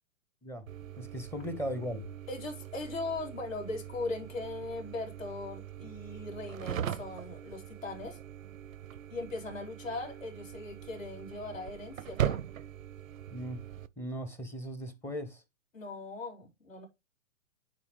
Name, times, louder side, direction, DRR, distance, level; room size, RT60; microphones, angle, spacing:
sound 1, 0.7-13.9, right 10 dB, 85° right, 0.6 m, -40 dB
voice 1, 1.0-2.1 13.3-13.6 14.0-15.4, equal, 5° left, 0.6 m, -38 dB
voice 2, 2.3-8.2 9.1-12.4 15.7-16.9, left 2 dB, 75° left, 3.5 m, -39 dB
9.8 x 4.4 x 3.3 m
hypercardioid pair, 125°, 39 cm